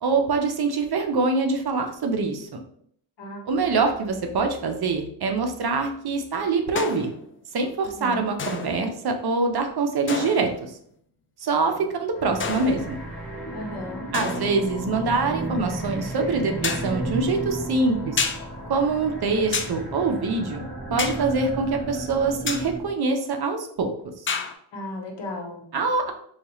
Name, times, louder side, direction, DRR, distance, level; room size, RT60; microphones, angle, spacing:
voice 1, 0.0-2.6 3.5-7.1 7.5-10.8 11.4-13.0 14.1-18.2 18.7-20.6 20.9-23.9 25.7-26.1, right 4 dB, 55° right, 5 dB, 0.7 m, -24 dB
sound 1, 6.8-7.2 8.4-9.0 10.1-10.7 12.4-13.1 14.1-14.7 16.6-17.0 18.2-18.5 19.5-19.8 21.0-21.3 22.5-22.7 24.3-24.5, left 5 dB, 30° left, 0.4 m, -29 dB
voice 2, 8.0-8.4 11.7-11.8 13.5-14.1 24.7-25.7, left 1 dB, 60° left, 1 dB, 1.1 m, -35 dB
sound 2, 12.1-22.9, right 1 dB, ahead, 1.2 m, -33 dB
4.3 x 2.4 x 3.0 m, 0.64 s
cardioid pair, 90°, 47 cm